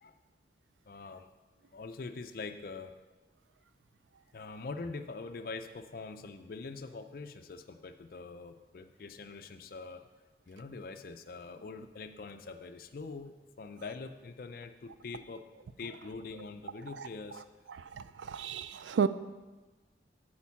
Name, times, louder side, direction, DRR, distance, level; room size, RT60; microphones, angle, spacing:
voice 1, 0.9-1.3 1.7-2.9 4.3-10.0 10.5-15.4 15.8-17.4, left 4 dB, 50° left, 8 dB, 0.4 m, -44 dB
voice 2, 17.8-19.1, right 6 dB, 90° right, 13 dB, 0.4 m, -32 dB
8.5 x 4.5 x 7.2 m, 1.2 s
head